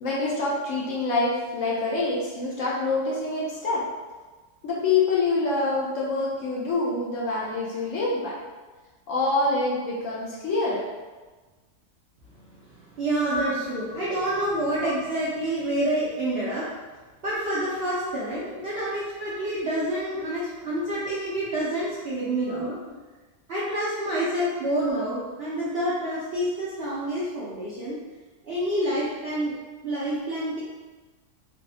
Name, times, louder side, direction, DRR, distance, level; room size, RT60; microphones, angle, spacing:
voice 1, 0.0-3.9 4.6-8.4 9.1-10.9 13.3-13.7 14.4-14.5 14.8-14.9 18.5-18.6 20.1-20.2 22.3-22.7, left 3 dB, 70° left, -4 dB, 0.8 m, -26 dB
voice 2, 12.7-16.7 17.2-22.8 23.5-28.0 28.4-29.5 29.8-30.6, right 1 dB, 65° right, -8 dB, 0.6 m, -28 dB
3.4 x 2.0 x 2.6 m, 1.3 s
omnidirectional pair, 1.6 m